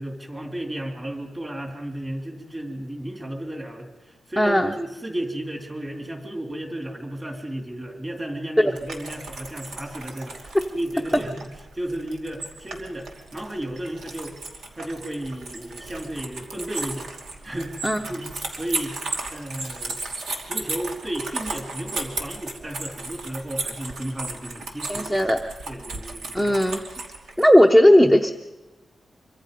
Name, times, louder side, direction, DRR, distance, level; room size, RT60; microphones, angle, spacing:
voice 1, 0.0-11.5 11.7-14.4 14.7-17.1 17.4-19.0 19.3-20.0 20.5-25.1 25.7-26.6, right 1 dB, 20° right, 4 dB, 2.9 m, -33 dB
voice 2, 4.4-4.7 8.6-8.7 17.8-18.0 24.9-25.4 26.3-26.8 27.4-28.3, equal, ahead, 6 dB, 0.8 m, -16 dB
sound 1, 8.7-27.5, right 3 dB, 85° right, 2.6 m, -35 dB
25.5 x 24.5 x 5.2 m, 1.1 s
wide cardioid pair, 160°, 0 cm